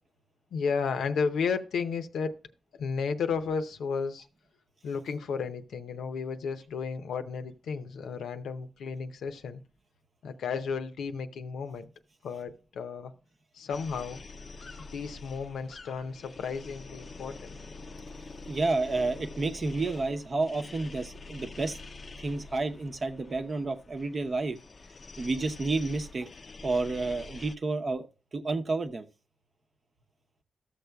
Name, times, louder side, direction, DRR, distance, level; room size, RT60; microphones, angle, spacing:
voice 1, 0.5-2.3 2.8-4.3 4.8-9.6 10.2-11.9 12.2-13.1 13.5-14.2 14.8-17.6, left 5 dB, 90° left, 0.6 m, -33 dB
sound 1, 13.7-27.6, left 3 dB, 45° left, 0.4 m, -46 dB
voice 2, 18.5-21.8 22.2-24.6 25.2-26.3 26.6-28.1 28.3-29.1, right 3 dB, 50° right, 0.8 m, -30 dB
14.0 x 6.7 x 2.3 m
cardioid pair, 70°, 0 cm